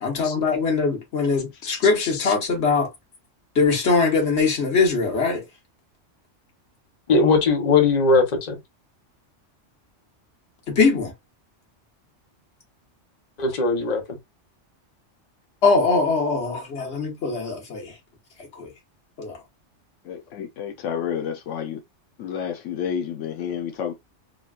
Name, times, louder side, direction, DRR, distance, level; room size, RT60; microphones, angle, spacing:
voice 1, 0.0-2.9 3.5-5.4 10.7-11.1 15.6-17.9 18.5-18.7 19.2-19.4, left 4 dB, 65° left, 1.4 m, -21 dB
voice 2, 7.1-8.6 13.4-14.0, left 4 dB, 40° left, 0.9 m, -19 dB
voice 3, 20.0-21.8 22.2-23.9, left 8 dB, 90° left, 1.0 m, -30 dB
3.7 x 2.3 x 2.4 m
omnidirectional pair, 1.2 m